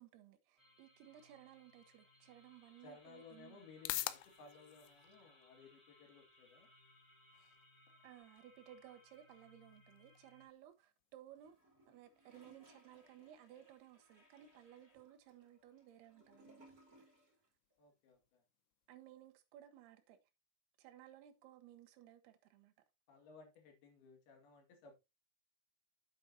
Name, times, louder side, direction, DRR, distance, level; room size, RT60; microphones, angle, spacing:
voice 1, 0.0-3.6 8.0-11.6 11.9-16.6 17.0-17.1 18.9-20.2 20.8-22.7, right 12 dB, 70° right, 2.8 m, -59 dB
sound 1, 0.6-10.5, left 1 dB, 5° left, 6.1 m, -67 dB
sound 2, 2.4-19.3, left 17 dB, 85° left, 3.0 m, -53 dB
voice 2, 2.8-6.7 17.8-18.4 23.1-25.0, left 4 dB, 65° left, 3.7 m, -60 dB
Gurgling / Toilet flush, 11.4-17.5 17.7-17.8, right 1 dB, 20° right, 3.2 m, -66 dB
8.9 x 8.4 x 2.7 m
omnidirectional pair, 5.2 m